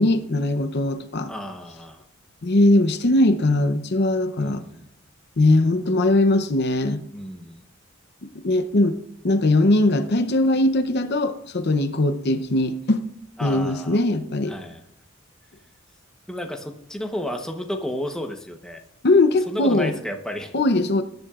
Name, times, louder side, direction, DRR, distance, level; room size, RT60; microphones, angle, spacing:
voice 1, 0.0-1.3 2.4-4.6 5.4-7.0 8.2-9.0 9.2-13.0 13.4-14.6 19.0-19.9 20.5-21.0, left 2 dB, 50° left, 10 dB, 0.7 m, -20 dB
voice 2, 1.3-2.0 4.4-4.9 7.1-7.6 13.4-14.0 14.5-14.8 16.3-18.8 19.5-20.5, left 1 dB, 5° left, 3 dB, 0.9 m, -32 dB
20.0 x 10.5 x 2.4 m, 0.76 s
head